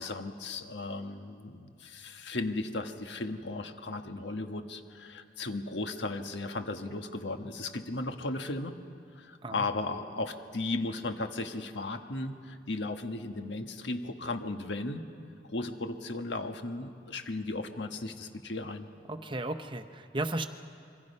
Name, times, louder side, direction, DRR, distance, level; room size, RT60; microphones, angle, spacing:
voice 1, 0.0-8.7 9.2-15.1 15.5-18.9, left 2 dB, 75° left, 6 dB, 1.4 m, -36 dB
voice 2, 19.1-20.5, right 2 dB, 25° right, 8 dB, 0.9 m, -34 dB
28.0 x 23.0 x 5.5 m, 2.4 s
head